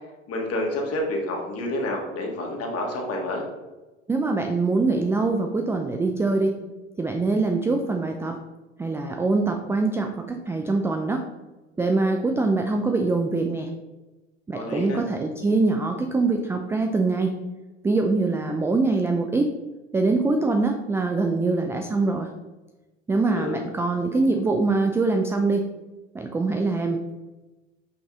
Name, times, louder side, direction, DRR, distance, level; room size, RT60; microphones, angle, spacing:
voice 1, 0.3-3.4 14.5-15.0 23.2-23.6, left 1 dB, 40° left, 0 dB, 1.8 m, -29 dB
voice 2, 4.1-6.6 7.0-8.4 8.8-11.3 11.8-13.7 14.5-17.4 17.8-19.6 19.9-22.3 23.1-25.7 26.1-27.1, right 3 dB, 5° right, 4 dB, 0.3 m, -23 dB
5.6 x 5.3 x 3.7 m, 1.1 s
figure-of-eight pair, 75°, 38 cm